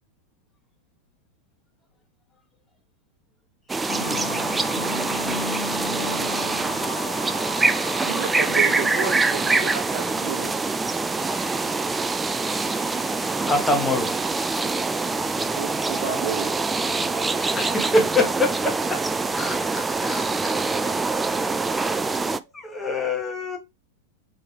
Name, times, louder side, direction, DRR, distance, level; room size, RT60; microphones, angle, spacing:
sound 1, 3.7-22.4, right 3 dB, 10° right, 0.3 m, -25 dB
sound 2, 3.9-18.4, left 5 dB, 55° left, 0.7 m, -38 dB
voice 1, 8.0-10.5 15.6-16.5, right 7 dB, 50° right, 1.1 m, -31 dB
voice 2, 13.5-14.1 17.5-19.0 19.3-21.5 22.5-23.6, left 2 dB, 10° left, 1.3 m, -26 dB
4.0 x 3.7 x 3.3 m
figure-of-eight pair, 90°, 0 cm